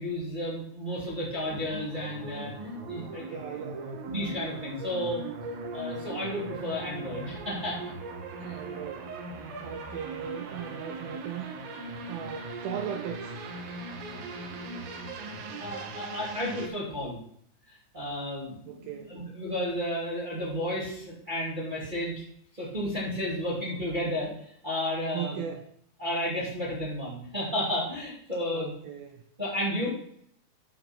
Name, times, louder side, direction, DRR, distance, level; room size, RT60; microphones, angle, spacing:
voice 1, 0.0-3.4 4.1-5.2 5.7-7.8 8.4-8.6 15.6-17.2 17.7-22.2 22.5-25.5 26.0-28.7 29.4-29.9, left 1 dB, 15° right, -5 dB, 1.6 m, -32 dB
sound 1, 1.5-16.7, right 3 dB, 70° right, 2.6 m, -39 dB
voice 2, 3.2-4.0 8.4-9.2 9.6-11.5 12.1-13.5 15.5-15.6 18.7-19.2 25.1-25.7 28.5-29.2, right 9 dB, 90° right, 5 dB, 2.1 m, -38 dB
9.3 x 4.4 x 5.8 m, 0.66 s
omnidirectional pair, 5.0 m